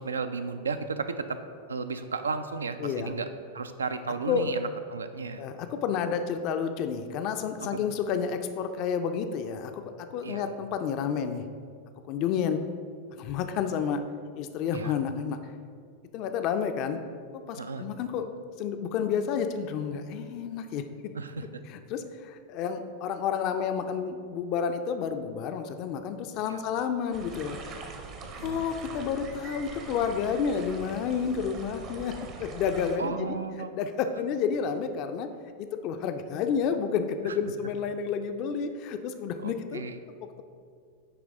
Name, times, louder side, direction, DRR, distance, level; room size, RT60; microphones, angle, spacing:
voice 1, 0.0-1.4 1.7-3.3 3.5-5.4 10.2-10.5 14.7-14.9 17.6-17.8 21.1-21.6 26.5-26.6 28.4-28.7 33.0-33.7 37.3-37.4 39.4-40.0, right 4 dB, 70° right, 10 dB, 0.3 m, -34 dB
voice 2, 2.8-3.1 4.3-4.6 5.4-11.5 12.1-12.6 13.2-14.0 14.3-15.5 16.1-17.0 17.3-20.8 21.7-27.6 28.4-32.1 32.4-33.4 33.7-35.3 35.6-39.8, left 7 dB, 40° left, 8 dB, 0.4 m, -30 dB
sound 1, 27.1-33.0, right 4 dB, 35° right, 0.7 m, -42 dB
9.8 x 3.3 x 3.6 m, 2.2 s
figure-of-eight pair, 90°, 0 cm